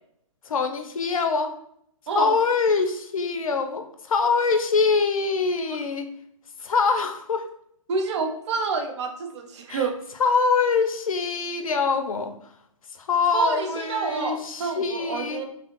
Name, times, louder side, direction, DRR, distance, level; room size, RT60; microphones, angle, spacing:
voice 1, 0.5-1.5 2.1-6.1 6.6-7.4 9.7-9.9 10.2-12.3 12.9-15.4, left 4 dB, 80° left, 6 dB, 0.5 m, -24 dB
voice 2, 7.9-9.9 13.3-15.4, right 5 dB, 55° right, 4 dB, 0.5 m, -28 dB
2.4 x 2.0 x 2.8 m, 0.70 s
hypercardioid pair, 130°, 18 cm